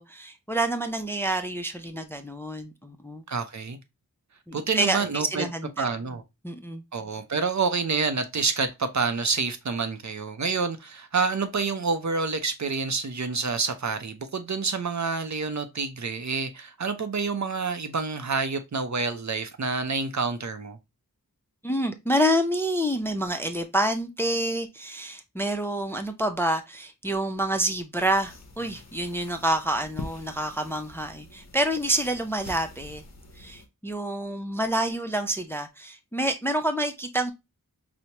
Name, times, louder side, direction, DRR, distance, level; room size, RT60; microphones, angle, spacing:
voice 1, 0.0-3.2 4.5-5.9 6.4-6.8 21.6-33.0 33.4-37.3, right 1 dB, 5° left, 0.4 m, -28 dB
voice 2, 3.3-3.8 4.5-5.5 5.8-6.2 6.9-20.8, right 4 dB, 50° right, 0.5 m, -28 dB
sound 1, 27.9-33.7, left 2 dB, 45° left, 0.7 m, -45 dB
4.5 x 2.1 x 2.7 m
wide cardioid pair, 50°, 36 cm